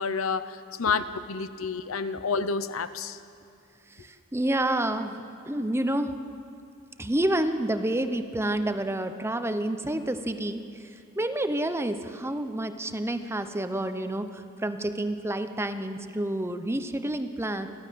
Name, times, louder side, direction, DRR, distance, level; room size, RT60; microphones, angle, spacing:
voice 1, 0.0-3.2, left 5 dB, 75° left, 13 dB, 0.8 m, -29 dB
voice 2, 4.0-6.3 7.0-10.9 11.2-17.7, right 1 dB, 10° right, 9 dB, 0.8 m, -29 dB
29.5 x 12.0 x 7.6 m, 2.5 s
head